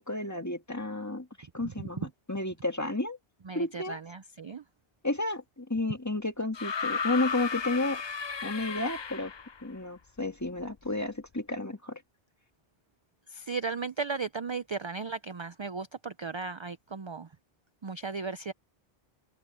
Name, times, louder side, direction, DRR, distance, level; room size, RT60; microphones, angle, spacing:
voice 1, 0.0-3.2 3.5-4.0 5.0-8.0 8.4-9.3 9.6-12.0, left 2 dB, 15° left, 1.8 m, -32 dB
voice 2, 3.4-4.6 13.3-17.3 17.8-18.5, right 4 dB, 35° right, 0.5 m, -36 dB
sound 1, 6.5-9.6 10.8-10.9, left 6 dB, 40° left, 0.4 m, -34 dB
open air
omnidirectional pair, 1.1 m